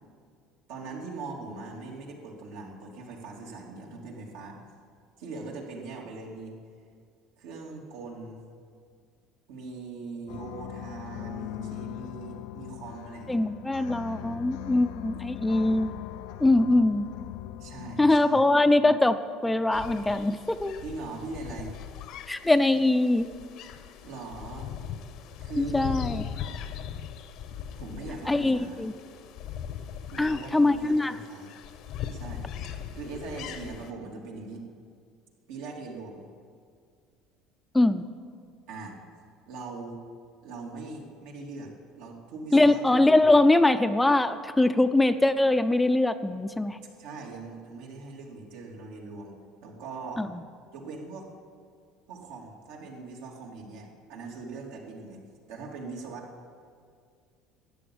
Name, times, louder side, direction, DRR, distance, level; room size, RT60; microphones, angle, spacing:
voice 1, 0.7-4.6 5.2-6.5 7.4-8.4 9.5-13.4 14.1-14.4 17.6-18.4 20.8-21.7 24.0-24.7 25.4-25.9 27.7-28.8 30.1-31.5 32.1-32.4 32.9-34.7 35.5-36.2 38.7-38.9 39.5-40.0 40.4-41.7 42.0-43.2 47.0-49.3 49.6-50.3 50.7-51.3 52.1-55.2 55.5-56.3, right 3 dB, 85° right, -1 dB, 3.0 m, -41 dB
sound 1, 10.3-18.2, left 14 dB, 80° left, 0.5 m, -40 dB
voice 2, 13.3-15.9 16.4-17.1 18.0-20.8 22.3-23.3 25.6-26.3 28.3-28.9 30.2-31.2 37.7-38.1 42.5-46.8 50.2-50.4, left 2 dB, 10° left, 10 dB, 0.5 m, -22 dB
sound 2, 19.7-33.9, left 9 dB, 65° left, 1.0 m, -40 dB
13.5 x 9.1 x 8.7 m, 2.1 s
cardioid pair, 125°, 0 cm